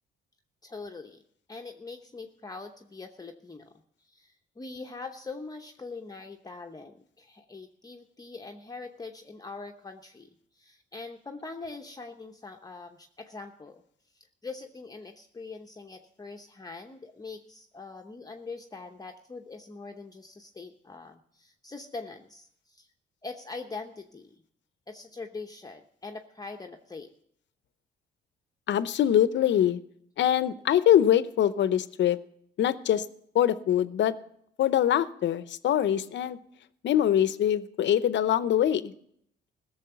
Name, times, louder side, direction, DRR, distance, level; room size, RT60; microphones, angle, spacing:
voice 1, 0.6-1.2 1.5-3.7 4.0-13.8 14.1-22.9 23.2-24.4 24.9-27.1, left 3 dB, 20° left, 3 dB, 0.9 m, -43 dB
voice 2, 28.7-29.8 30.2-32.2 32.6-33.0 33.3-34.2 34.6-36.4 36.8-38.9, left 10 dB, 65° left, 15 dB, 0.7 m, -23 dB
16.0 x 7.1 x 6.9 m, 0.69 s
cardioid pair, 90°, 20 cm